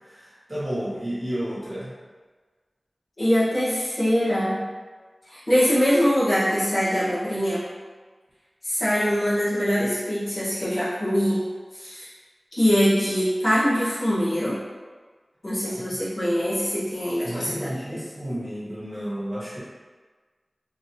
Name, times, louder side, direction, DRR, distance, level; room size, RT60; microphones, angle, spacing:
voice 1, 0.0-1.9 15.6-15.7 17.2-19.6, equal, 20° right, -10 dB, 1.2 m, -32 dB
voice 2, 3.2-4.6 5.3-7.6 8.6-11.5 11.7-12.1 12.6-14.6 15.4-18.0, equal, 55° left, -11 dB, 1.3 m, -23 dB
3.0 x 2.6 x 2.8 m, 1.4 s
wide cardioid pair, 70°, 0 cm